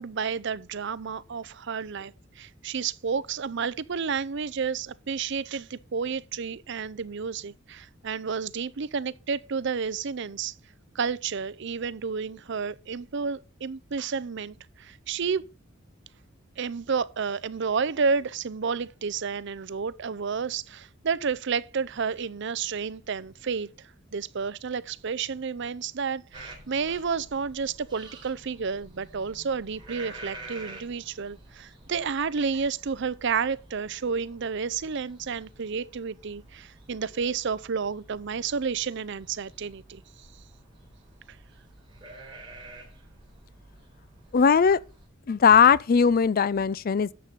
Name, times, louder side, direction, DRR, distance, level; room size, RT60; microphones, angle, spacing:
voice 1, 0.0-10.5 10.9-15.4 16.6-40.3 41.3-41.4, right 5 dB, 65° right, 0.6 m, -31 dB
sound 1, 26.3-45.0, right 2 dB, 25° right, 3.8 m, -49 dB
voice 2, 44.3-44.8 45.3-47.1, left 6 dB, 45° left, 0.4 m, -19 dB
11.0 x 7.4 x 4.0 m
head